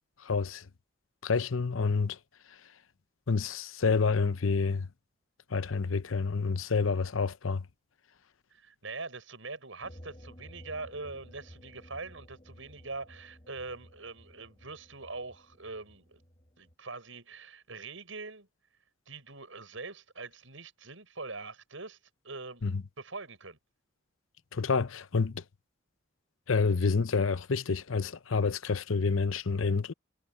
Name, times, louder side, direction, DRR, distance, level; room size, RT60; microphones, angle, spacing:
voice 1, 0.2-0.7 1.2-2.2 3.3-4.9 5.5-7.6 22.6-22.8 24.5-25.4 26.5-29.9, left 4 dB, 85° left, 0.7 m, -28 dB
voice 2, 8.5-16.2 16.6-18.5 19.1-22.0 22.2-23.6, right 3 dB, 75° right, 6.9 m, -43 dB
sound 1, 9.8-16.7, equal, 30° left, 2.9 m, -54 dB
head